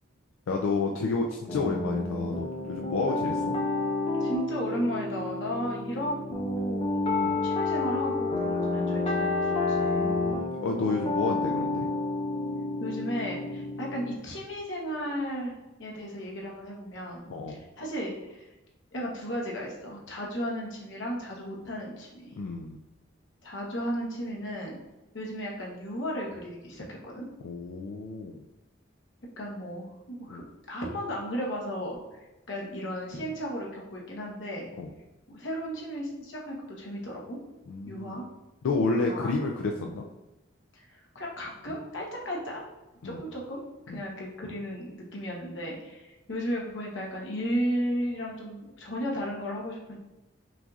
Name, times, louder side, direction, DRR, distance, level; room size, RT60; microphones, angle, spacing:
voice 1, 0.5-3.5 7.2-7.4 9.9-11.9 17.3-17.6 22.4-22.8 27.4-28.4 30.3-30.4 34.8-34.9 37.7-38.2 38.6-40.0 43.0-43.2 43.9-44.0, left 3 dB, 90° left, 1 dB, 0.4 m, -30 dB
sound 1, 1.5-14.2, left 3 dB, 30° left, 0.5 m, -30 dB
voice 2, 4.2-10.1 12.8-17.2 17.5-18.4 18.9-22.3 23.4-24.8 25.1-27.3 29.4-30.4 30.7-32.2 32.5-34.7 35.3-37.4 37.8-38.3 39.0-39.3 39.7-39.9 40.7-42.6 43.0-43.6 43.9-50.0, equal, 65° left, -2 dB, 1.0 m, -34 dB
6.0 x 2.6 x 2.4 m, 1.0 s
head